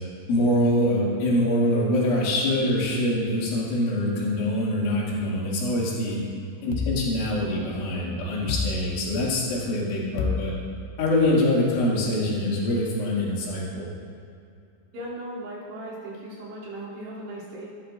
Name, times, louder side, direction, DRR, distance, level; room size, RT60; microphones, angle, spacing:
voice 1, 0.3-6.2 6.6-10.5 11.0-13.9, left 1 dB, 70° left, -6 dB, 4.8 m, -24 dB
sound 1, 6.7-7.8 8.5-9.5 10.2-11.3, left 5 dB, 90° left, 3.4 m, -31 dB
voice 2, 14.9-17.7, right 1 dB, 60° right, -8 dB, 5.1 m, -37 dB
18.0 x 13.5 x 2.6 m, 2.5 s
omnidirectional pair, 5.7 m